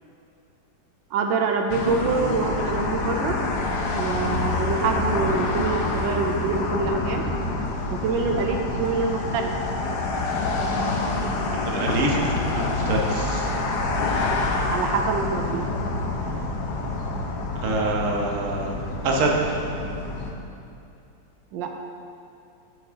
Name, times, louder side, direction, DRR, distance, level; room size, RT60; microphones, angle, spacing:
voice 1, 1.1-3.4 3.9-7.3 7.9-9.5 14.7-15.7 21.5-21.7, right 4 dB, 85° right, 4 dB, 1.3 m, -25 dB
sound 1, 1.7-20.3, left 3 dB, 70° left, 1.3 m, -27 dB
voice 2, 11.4-13.5 17.6-18.7 19.0-19.3, right 2 dB, 50° right, -1 dB, 1.2 m, -25 dB
11.0 x 5.5 x 3.7 m, 2.6 s
omnidirectional pair, 2.0 m